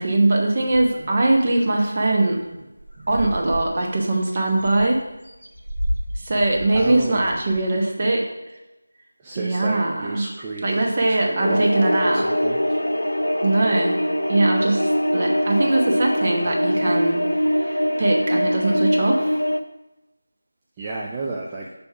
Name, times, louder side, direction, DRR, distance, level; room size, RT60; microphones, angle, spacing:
voice 1, 0.0-2.6 3.1-5.0 6.2-8.3 9.3-10.3 10.6-12.2 13.4-14.0 14.3-17.2 17.6-19.4, right 2 dB, 35° right, 0 dB, 1.0 m, -21 dB
sound 1, 0.7-1.4 1.9-2.0 2.2-2.5 2.8-7.8, equal, 80° right, 1.4 m, -33 dB
voice 2, 6.7-7.5 9.2-11.6 12.1-12.8 20.8-21.7, right 3 dB, 15° right, -4 dB, 0.4 m, -32 dB
sound 2, 11.4-19.6, equal, 80° left, 0.4 m, -22 dB
6.7 x 3.5 x 5.7 m, 1.0 s
figure-of-eight pair, 165°, 0 cm